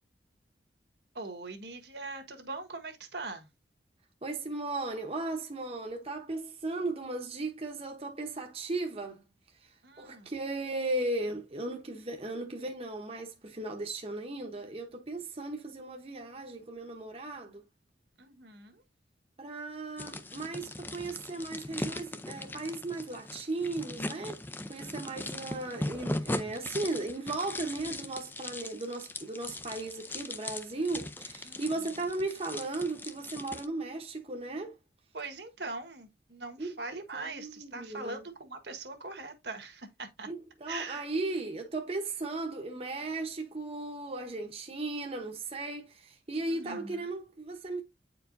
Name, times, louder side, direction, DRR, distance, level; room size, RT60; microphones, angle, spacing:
voice 1, 1.1-3.5 9.8-10.3 18.2-18.8 24.8-25.6 31.4-31.8 35.1-40.3 40.7-41.0 46.5-47.1, right 3 dB, 70° right, 1.5 m, -42 dB
voice 2, 4.2-9.2 10.0-17.6 19.4-24.4 24.7-34.7 36.6-36.7 37.1-38.2 40.3-47.8, right 2 dB, 35° right, 0.9 m, -36 dB
sound 1, 20.0-33.7, left 2 dB, 10° left, 0.5 m, -39 dB
9.3 x 4.6 x 2.6 m
head